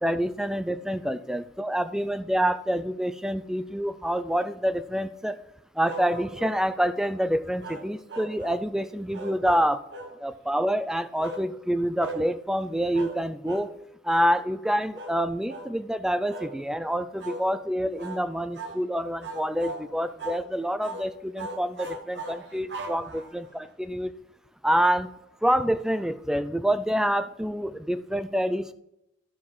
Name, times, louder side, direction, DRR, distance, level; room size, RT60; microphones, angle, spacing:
voice 1, 0.0-5.4 5.8-9.8 10.2-13.7 14.0-24.1 24.6-25.1 25.4-28.7, equal, 5° right, 12 dB, 0.4 m, -27 dB
sound 1, 5.8-6.6 7.6-8.6 9.1-10.2 11.2-11.5 12.0-12.2 12.9-13.2 13.5-13.7 14.1-14.3 14.9-15.2 15.5-15.7 16.3-16.6 17.2-17.4 18.0-18.2 18.5-18.8 19.2-19.9 20.2-20.4 20.8-21.1 21.4-23.5, right 2 dB, 75° right, 1.3 m, -38 dB
12.0 x 4.7 x 5.6 m, 0.80 s
head